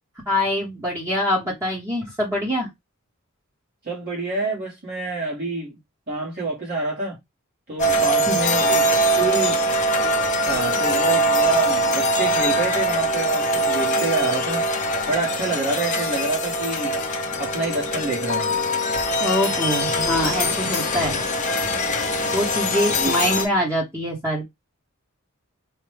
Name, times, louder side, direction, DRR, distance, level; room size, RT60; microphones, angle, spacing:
voice 1, 0.3-2.7 8.3-8.4 19.2-21.2 22.3-24.4, equal, 15° right, 0.9 m, -24 dB
voice 2, 3.8-5.8 6.1-7.2 7.7-9.7 10.4-14.7 15.1-17.0 17.4-18.5 23.0-23.1, right 3 dB, 45° right, 1.2 m, -27 dB
sound 1, 7.8-23.5, equal, 35° left, 0.6 m, -22 dB
4.7 x 2.2 x 3.2 m
head